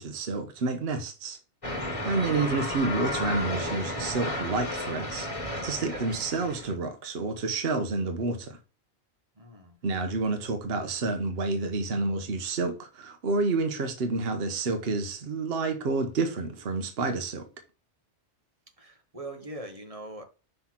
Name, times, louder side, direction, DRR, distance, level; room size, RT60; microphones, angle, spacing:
voice 1, 0.0-1.4 2.0-8.6 9.8-17.5, right 3 dB, 60° right, 1.1 m, -29 dB
sound 1, 1.6-6.7, left 1 dB, 30° left, 1.5 m, -33 dB
voice 2, 2.0-2.3 5.9-6.2 9.4-9.8 18.8-20.2, right 1 dB, 35° right, 1.0 m, -42 dB
5.9 x 3.3 x 5.8 m
omnidirectional pair, 1.2 m